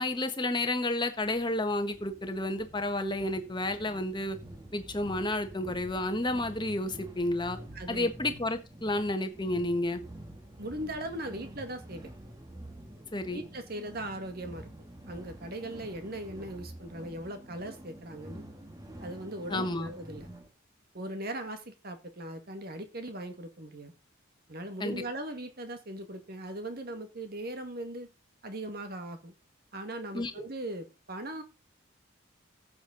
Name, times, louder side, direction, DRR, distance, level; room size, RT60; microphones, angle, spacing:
voice 1, 0.0-4.4 4.7-7.6 7.9-10.0 13.1-13.4 19.5-19.9 24.8-25.0 30.1-30.3, left 1 dB, 25° left, 1.5 m, -31 dB
sound 1, 1.0-20.5, right 1 dB, 20° right, 1.8 m, -48 dB
voice 2, 7.7-8.1 10.6-12.1 13.3-14.7 15.1-18.4 19.0-20.3 20.9-23.9 24.5-28.1 28.4-29.3 29.7-31.4, right 1 dB, 50° right, 2.0 m, -39 dB
14.5 x 7.3 x 4.0 m
head